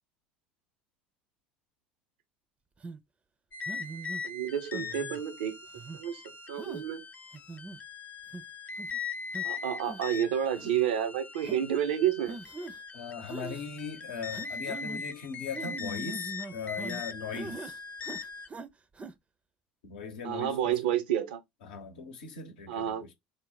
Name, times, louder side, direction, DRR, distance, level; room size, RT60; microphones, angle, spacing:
sound 1, 2.8-3.0 3.7-4.2 4.7-5.2 5.8-6.0 6.6-6.8 7.3-7.8 8.3-8.4 8.8-9.0 9.3-9.4 9.8-10.2 10.6-10.7 11.4-11.6 12.3-12.8 13.3-13.7 14.3-15.0 15.5-17.0 17.3-17.8 18.0-18.7 19.0-19.1, right 3 dB, 25° right, 0.5 m, -42 dB
sound 2, 3.5-18.5, left 5 dB, 35° left, 0.5 m, -40 dB
voice 1, 4.2-5.6 5.9-6.2 6.5-7.0 9.4-12.4 20.2-21.4 22.7-23.0, right 10 dB, 75° right, 0.6 m, -30 dB
voice 2, 12.9-17.8 19.8-21.0 21.6-23.1, left 5 dB, 75° left, 0.8 m, -39 dB
3.4 x 2.1 x 3.9 m
hypercardioid pair, 65°, 5 cm